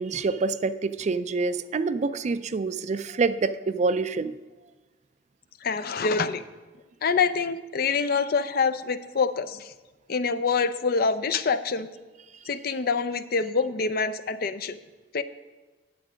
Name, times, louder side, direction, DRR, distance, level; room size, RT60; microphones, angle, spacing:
voice 1, 0.0-4.3, right 4 dB, 40° right, 13 dB, 0.4 m, -26 dB
voice 2, 5.6-6.4 7.0-9.7 10.1-11.9 12.5-14.8 15.1-15.2, left 5 dB, 55° left, 13 dB, 0.5 m, -26 dB
9.5 x 7.9 x 5.0 m, 1.2 s
head